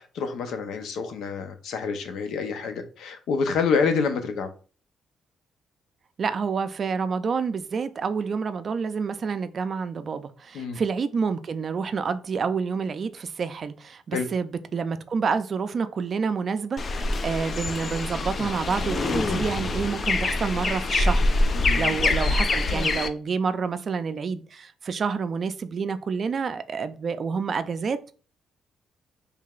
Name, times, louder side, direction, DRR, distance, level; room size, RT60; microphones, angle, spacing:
voice 1, 0.1-4.5 10.5-10.8 14.1-14.3 21.5-22.0, left 5 dB, 80° left, 0.7 m, -27 dB
voice 2, 6.2-21.2 21.8-28.1, right 5 dB, 50° right, 0.4 m, -28 dB
sound 1, 16.8-23.1, left 2 dB, 40° left, 0.5 m, -25 dB
4.7 x 3.3 x 2.4 m
cardioid pair, 90°, 0 cm